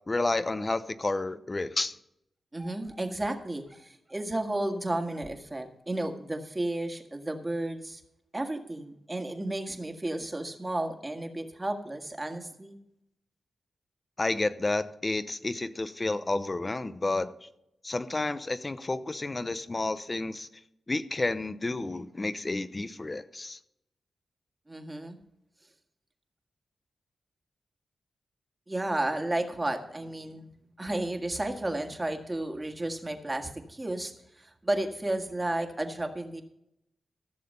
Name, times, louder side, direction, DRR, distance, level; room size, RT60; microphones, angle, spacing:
voice 1, 0.1-1.9 14.2-17.5 17.8-20.5 20.9-23.6, left 2 dB, 30° left, 13 dB, 0.7 m, -30 dB
voice 2, 2.5-8.0 8.3-12.8 24.7-25.2 28.7-30.5 30.8-36.4, right 1 dB, 25° right, 5 dB, 1.7 m, -33 dB
15.0 x 6.7 x 5.4 m, 0.80 s
cardioid pair, 60°, 0 cm